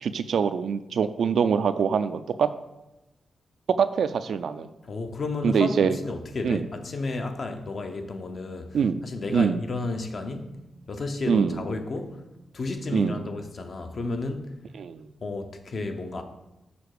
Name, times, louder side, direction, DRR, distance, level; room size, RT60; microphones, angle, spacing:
voice 1, 0.0-2.5 3.8-4.7 5.4-6.0 6.4-6.6 8.7-9.0 9.3-9.6 11.3-11.6 12.9-13.2 14.8-15.1, right 6 dB, 75° right, 0.4 m, -24 dB
voice 2, 4.9-10.5 10.9-12.2 12.5-14.6 15.2-16.2, left 3 dB, 45° left, 0.7 m, -32 dB
6.8 x 4.9 x 4.8 m
wide cardioid pair, 125°, 0 cm